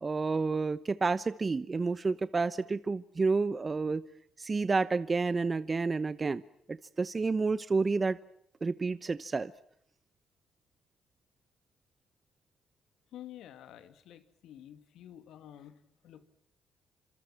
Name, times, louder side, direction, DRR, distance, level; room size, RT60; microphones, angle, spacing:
voice 1, 0.0-4.0 4.4-6.4 6.7-8.2 8.6-9.5, right 4 dB, 30° right, 15 dB, 0.9 m, -30 dB
voice 2, 13.1-16.2, left 11 dB, 80° left, 10 dB, 2.7 m, -50 dB
28.5 x 26.5 x 6.0 m, 0.69 s
cardioid pair, 90°, 0 cm